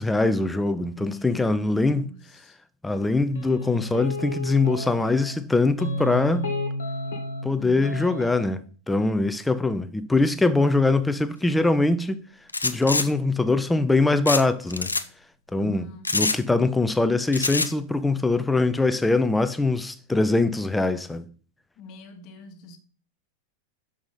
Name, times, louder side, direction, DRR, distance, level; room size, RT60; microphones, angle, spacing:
voice 1, 0.0-2.1 2.8-6.5 7.4-8.6 8.9-12.2 12.6-14.9 15.5-15.8 16.1-21.3, left 3 dB, 5° left, 0.6 m, -22 dB
voice 2, 0.8-2.6 7.6-8.2 15.5-16.1 21.8-22.8, left 2 dB, 40° left, 1.3 m, -42 dB
sound 1, 3.3-5.4 5.8-7.5 7.8-8.5, left 2 dB, 65° left, 1.4 m, -32 dB
sound 2, 12.5-13.1 14.3-14.4 14.7-15.0 16.1-16.4 17.3-17.7, left 3 dB, 80° left, 0.4 m, -24 dB
6.0 x 4.9 x 5.7 m
figure-of-eight pair, 90°, 0 cm